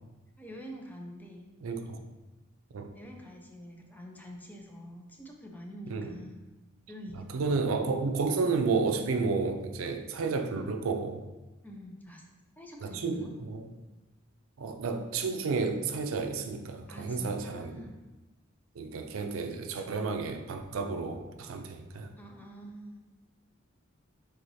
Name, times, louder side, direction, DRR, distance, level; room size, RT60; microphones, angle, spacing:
voice 1, 0.4-1.5 2.9-6.4 6.9-7.6 11.6-12.3 12.6-13.3 16.9-18.0 22.2-23.0, equal, 10° left, 1 dB, 0.5 m, -46 dB
voice 2, 1.6-2.0 2.7-2.9 5.9-6.1 7.2-11.2 12.8-13.7 14.6-17.8 18.8-22.1, right 4 dB, 85° right, 5 dB, 0.4 m, -31 dB
4.6 x 3.8 x 2.7 m, 1.1 s
head